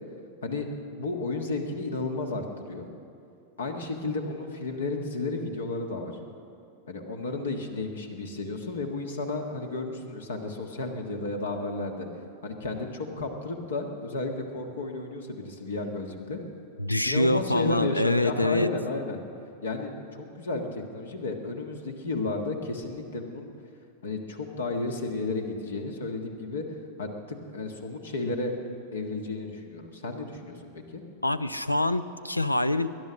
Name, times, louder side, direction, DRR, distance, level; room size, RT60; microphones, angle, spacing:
voice 1, 1.0-2.9 3.6-6.1 6.9-12.1 12.4-16.4 17.0-19.2 19.6-23.5 24.0-26.6 27.0-28.5 28.9-30.6 30.9-31.0, left 3 dB, 65° left, 4 dB, 1.6 m, -32 dB
voice 2, 16.8-18.7 31.2-32.9, left 1 dB, 85° left, 15 dB, 0.5 m, -25 dB
20.0 x 11.0 x 6.4 m, 2.6 s
figure-of-eight pair, 90°, 0 cm